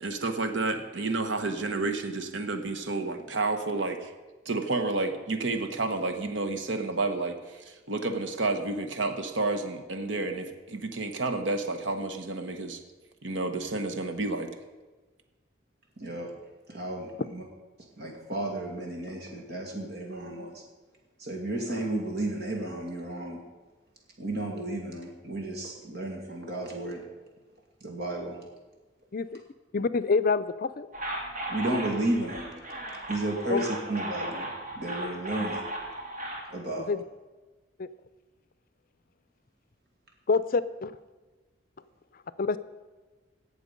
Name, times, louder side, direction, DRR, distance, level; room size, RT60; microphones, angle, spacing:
voice 1, 0.0-4.1 4.4-12.8 13.2-14.5, right 3 dB, 80° right, 7 dB, 1.1 m, -30 dB
voice 2, 16.0-16.3 16.7-17.4 18.0-20.6 21.2-23.4 24.2-27.0 27.8-28.4 31.5-32.5 33.1-34.5 34.7-35.6 36.5-36.8, right 1 dB, 60° right, 0 dB, 2.4 m, -33 dB
voice 3, 29.7-30.9 33.5-33.6 36.8-37.0 37.8-37.9 40.3-40.9 42.4-42.6, left 4 dB, 50° left, 15 dB, 0.5 m, -26 dB
sound 1, 30.9-36.4, right 1 dB, 45° right, 2.4 m, -36 dB
17.5 x 6.9 x 5.3 m, 1.3 s
head